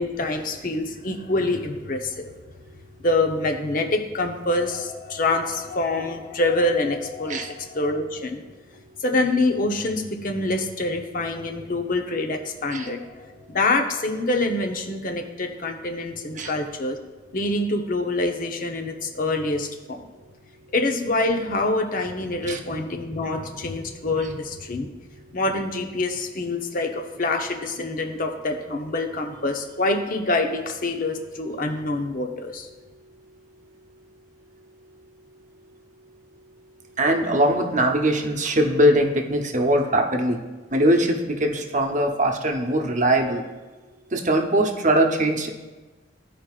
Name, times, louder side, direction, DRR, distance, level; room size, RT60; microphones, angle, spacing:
voice 1, 0.0-2.3 3.0-8.4 9.0-17.0 17.3-20.0 20.7-24.9 25.3-32.7, left 2 dB, 50° left, 4 dB, 0.8 m, -26 dB
voice 2, 37.0-40.4 40.7-43.4 44.1-45.5, right 1 dB, 45° right, 3 dB, 0.9 m, -21 dB
14.5 x 5.1 x 2.4 m, 1.2 s
head